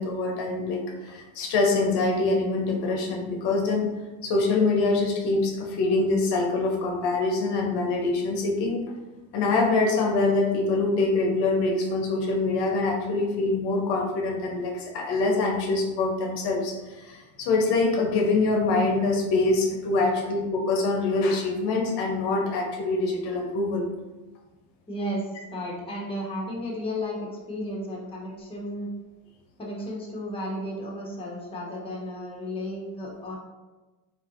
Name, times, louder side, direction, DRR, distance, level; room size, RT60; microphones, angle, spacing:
voice 1, 0.0-3.9 4.2-8.9 9.3-23.9, left 3 dB, 65° left, 0 dB, 0.7 m, -24 dB
voice 2, 24.9-28.9 29.6-33.4, equal, 15° left, -3 dB, 0.9 m, -33 dB
3.8 x 2.5 x 2.5 m, 1.2 s
supercardioid pair, 105°, 43 cm